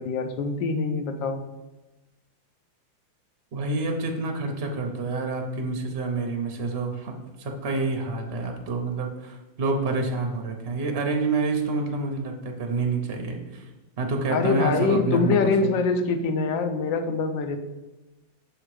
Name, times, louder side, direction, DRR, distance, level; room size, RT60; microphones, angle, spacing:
voice 1, 0.0-1.4 14.3-17.6, left 4 dB, 75° left, 7 dB, 1.3 m, -24 dB
voice 2, 3.5-13.7 14.0-15.5, right 3 dB, 60° right, 3 dB, 0.6 m, -28 dB
6.5 x 3.6 x 4.7 m, 1.1 s
omnidirectional pair, 2.1 m